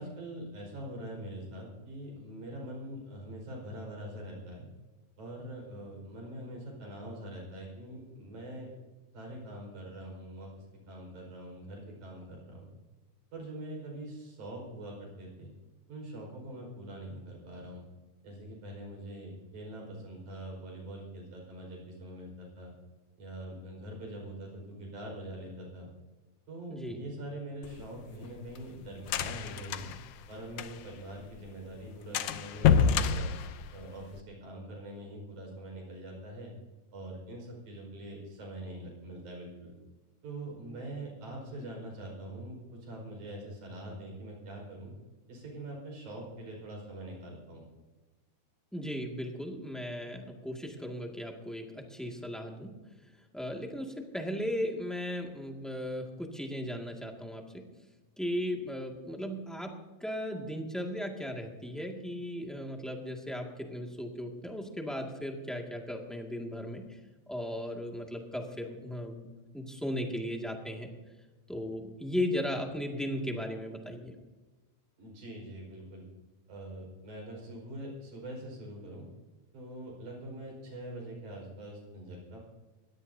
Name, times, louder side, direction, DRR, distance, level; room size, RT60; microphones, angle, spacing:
voice 1, 0.0-4.7 5.2-8.7 9.1-10.5 10.9-12.7 13.3-15.5 15.9-17.8 18.2-22.7 23.2-25.9 26.5-29.9 30.3-33.3 33.7-36.5 36.9-39.7 40.2-44.9 45.3-47.6 75.0-76.1 76.5-79.1 79.5-82.4, right 1 dB, 90° right, 0 dB, 6.4 m, -43 dB
sound 1, 27.6-31.0 31.3-31.4 31.7-31.8 32.1-34.2, left 7 dB, 70° left, 1.5 m, -28 dB
voice 2, 48.7-52.7 53.3-57.6 58.2-59.7 60.0-66.8 67.3-69.3 69.5-70.9 71.5-74.1, equal, ahead, 1 dB, 1.3 m, -36 dB
22.0 x 17.0 x 2.8 m, 1.2 s
omnidirectional pair, 3.4 m